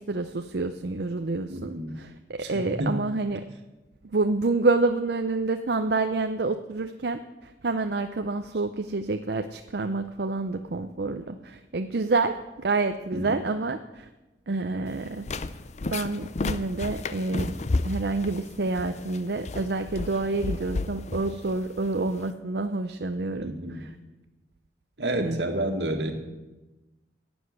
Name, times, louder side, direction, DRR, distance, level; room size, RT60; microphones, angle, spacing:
voice 1, 0.0-3.4 4.1-14.1 14.5-15.3 15.8-17.6 17.8-23.9 25.2-25.4, right 3 dB, 65° right, 7 dB, 0.6 m, -28 dB
voice 2, 1.5-2.0 2.4-2.5 2.8-2.9 13.1-13.4 23.4-23.8 25.0-26.1, right 1 dB, 80° right, 5 dB, 1.9 m, -29 dB
sound 1, 14.9-22.3, left 3 dB, 40° left, 0.6 m, -33 dB
11.5 x 7.9 x 9.6 m, 1.1 s
head